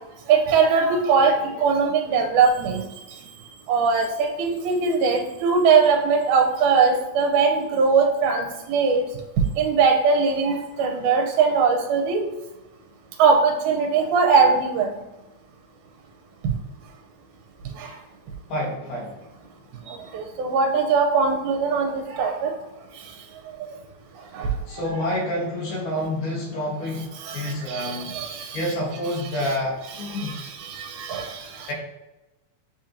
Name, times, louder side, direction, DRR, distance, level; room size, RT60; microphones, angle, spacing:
voice 1, 0.3-2.8 3.7-9.0 9.6-12.2 13.2-14.9 16.4-16.5 17.8-17.9 19.9-22.5 24.3-24.5 27.2-28.6 30.1-31.7, right 5 dB, 85° right, 3 dB, 2.0 m, -21 dB
voice 2, 18.5-19.2 24.7-28.1 28.5-30.4 31.7-31.8, left 1 dB, 85° left, -3 dB, 2.7 m, -28 dB
7.3 x 2.8 x 2.5 m, 1.0 s
omnidirectional pair, 3.5 m